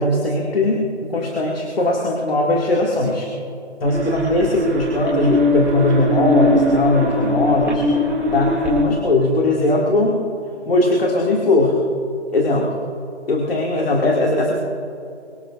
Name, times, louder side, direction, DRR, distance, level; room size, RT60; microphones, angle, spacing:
voice 1, 0.0-3.3 3.8-7.9 8.3-10.1 10.7-11.8 12.3-12.6 13.3-14.5, left 2 dB, 55° left, -2 dB, 2.4 m, -19 dB
sound 1, 3.8-8.9, left 1 dB, 5° right, 1.8 m, -20 dB
24.0 x 18.0 x 2.6 m, 2.6 s
figure-of-eight pair, 155°, 35 cm